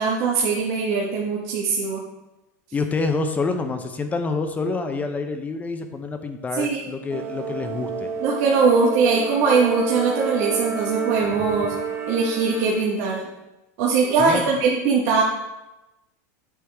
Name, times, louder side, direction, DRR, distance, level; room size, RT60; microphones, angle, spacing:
voice 1, 0.0-2.0 6.5-6.8 8.2-11.7 12.1-13.2 13.8-15.2, right 4 dB, 60° right, -3 dB, 1.3 m, -21 dB
voice 2, 2.7-8.1 14.2-14.5, left 3 dB, 15° left, 7 dB, 0.6 m, -27 dB
sound 1, 7.1-12.9, right 6 dB, 25° right, 1.1 m, -29 dB
8.1 x 6.0 x 3.5 m, 1.0 s
supercardioid pair, 125°, 9 cm